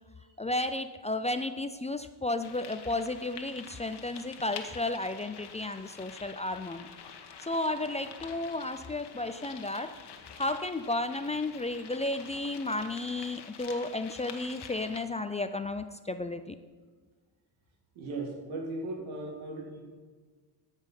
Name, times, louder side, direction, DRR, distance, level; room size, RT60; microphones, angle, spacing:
voice 1, 0.4-6.9 7.4-10.0 10.4-16.6, left 2 dB, 15° left, 10 dB, 0.4 m, -33 dB
sound 1, 2.4-15.0, left 7 dB, 60° left, 1.2 m, -47 dB
voice 2, 17.9-19.8, right 2 dB, 85° right, 1 dB, 2.2 m, -37 dB
13.5 x 5.4 x 5.6 m, 1.5 s
cardioid pair, 80°, 46 cm